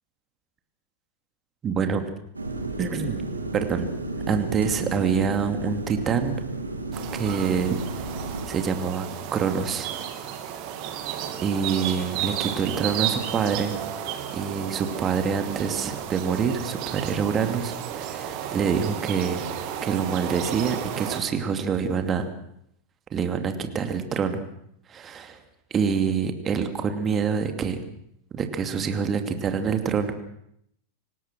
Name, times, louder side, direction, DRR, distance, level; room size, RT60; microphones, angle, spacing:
voice 1, 1.6-2.1 2.8-3.2 3.5-3.9 4.3-6.4 7.1-7.8 8.5-9.9 11.4-13.8 14.3-19.4 19.8-22.3 23.1-24.4 24.9-25.4 25.7-27.8 28.3-30.1, right 6 dB, 25° right, 7 dB, 2.6 m, -26 dB
sound 1, 2.3-8.5, right 2 dB, 80° right, 2.7 m, -32 dB
sound 2, 6.9-21.2, right 10 dB, 45° right, 2.8 m, -33 dB
26.0 x 18.5 x 6.2 m, 0.73 s
figure-of-eight pair, 90°, 0 cm